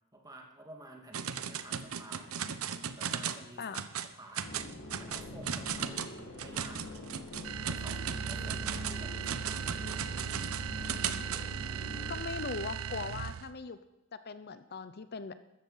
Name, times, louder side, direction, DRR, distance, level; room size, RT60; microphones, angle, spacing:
voice 1, 0.1-2.4 2.9-3.7 4.1-4.5 5.0-6.8 7.7-10.0, right 1 dB, 20° right, 1 dB, 2.3 m, -51 dB
sound 1, 1.1-3.5 3.7-4.1 4.3-11.4, right 7 dB, 85° right, 0.9 m, -37 dB
sound 2, 4.4-12.2, left 1 dB, 80° left, 1.9 m, -44 dB
sound 3, 7.4-13.6, right 7 dB, 70° right, 0.4 m, -38 dB
voice 2, 12.1-13.8 14.2-15.3, left 4 dB, 50° left, 12 dB, 0.7 m, -39 dB
13.5 x 13.5 x 5.6 m, 1.0 s
head